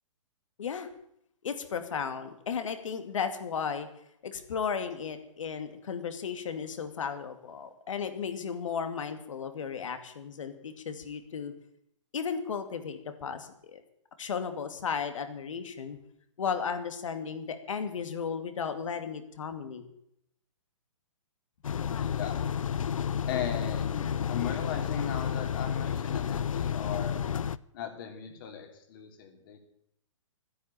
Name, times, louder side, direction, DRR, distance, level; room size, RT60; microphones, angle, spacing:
voice 1, 1.4-3.9 4.2-11.5 12.1-13.8 14.2-16.0 16.4-19.9, left 6 dB, 70° left, 9 dB, 2.4 m, -35 dB
sound 1, 21.6-27.6, left 8 dB, 90° left, 0.6 m, -31 dB
voice 2, 21.9-22.4 23.3-27.2 27.7-29.6, left 8 dB, 40° left, 4 dB, 3.2 m, -38 dB
13.5 x 10.0 x 9.1 m, 0.74 s
hypercardioid pair, 155°, 17 cm